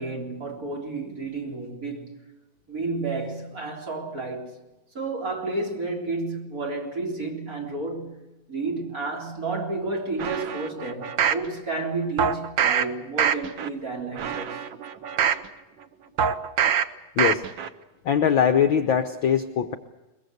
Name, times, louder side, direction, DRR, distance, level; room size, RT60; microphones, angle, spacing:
voice 1, 0.0-2.1 2.7-4.6 4.9-8.2 8.5-14.6, right 3 dB, 25° right, 3.8 m, -31 dB
sound 1, 10.2-11.5 12.2-12.8 13.2-13.7 14.1-15.5 16.2-16.8 17.2-17.7 18.1-18.2, right 8 dB, 80° right, 1.0 m, -24 dB
voice 2, 18.0-19.7, left 8 dB, 75° left, 1.1 m, -21 dB
22.5 x 22.0 x 8.0 m
omnidirectional pair, 3.5 m